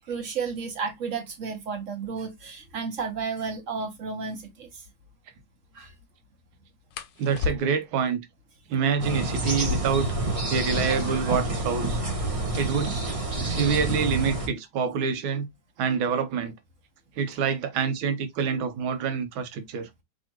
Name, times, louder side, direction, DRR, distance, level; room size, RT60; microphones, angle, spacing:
voice 1, 0.0-4.7 5.7-5.9 11.0-11.3 12.3-12.4 13.3-13.4, right 5 dB, 45° right, 1.2 m, -33 dB
sound 1, 3.7-3.8 4.2-4.4 6.9-8.0 9.5-11.1 11.4-11.5 11.7-12.3 12.9-15.5 16.5-16.8 17.2-17.7 18.0-18.7, left 6 dB, 70° left, 1.3 m, -37 dB
voice 2, 7.2-8.3 8.7-10.1 10.5-12.0 12.5-13.0 13.4-15.5 15.8-16.5 17.2-19.9, right 6 dB, 80° right, 1.7 m, -26 dB
sound 2, 9.0-14.5, right 2 dB, 25° right, 0.7 m, -28 dB
4.9 x 3.4 x 2.9 m
omnidirectional pair, 2.2 m